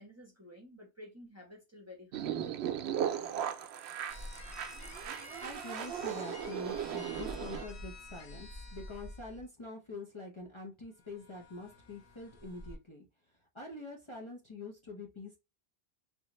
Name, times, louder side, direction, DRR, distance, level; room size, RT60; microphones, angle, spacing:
voice 1, 0.0-2.3, left 1 dB, 15° right, 0.9 m, -52 dB
sound 1, 2.1-7.6, right 9 dB, 80° right, 0.8 m, -37 dB
sound 2, 4.1-9.4 10.9-12.8, left 2 dB, 80° left, 1.3 m, -48 dB
voice 2, 4.5-13.1 13.5-15.4, left 2 dB, 30° left, 0.9 m, -46 dB
3.7 x 2.5 x 3.0 m
omnidirectional pair, 1.1 m